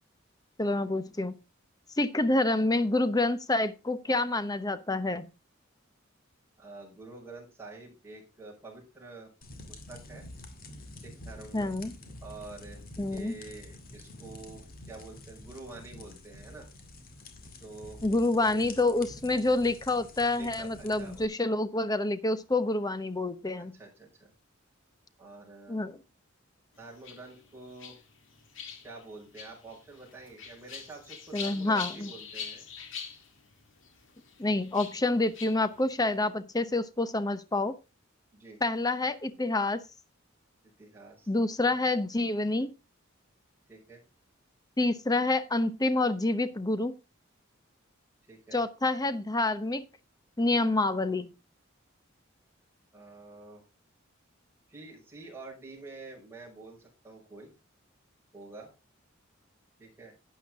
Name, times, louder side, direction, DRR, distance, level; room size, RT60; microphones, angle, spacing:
voice 1, 0.6-1.3 2.0-5.3 11.5-11.9 13.0-13.3 18.0-23.8 25.7-26.0 31.3-32.1 34.4-37.7 38.6-39.8 41.3-42.7 44.8-46.9 48.5-49.8 50.4-51.3, left 2 dB, 20° left, 12 dB, 0.8 m, -27 dB
voice 2, 6.6-9.3 9.7-10.3 11.0-11.7 12.2-16.7 17.6-18.0 18.4-18.7 20.3-21.3 23.6-24.3 25.2-25.8 26.8-28.0 28.8-32.6 38.3-38.6 40.8-41.3 41.6-41.7 43.7-44.0 48.3-48.6 52.9-53.6 54.7-57.5 58.3-58.7 59.8-60.2, right 3 dB, 10° right, -4 dB, 5.6 m, -47 dB
sound 1, 9.4-21.3, left 2 dB, 45° left, 2.0 m, -48 dB
sound 2, 26.8-36.2, left 6 dB, 65° left, 2.1 m, -44 dB
11.5 x 9.3 x 3.6 m, 0.28 s
head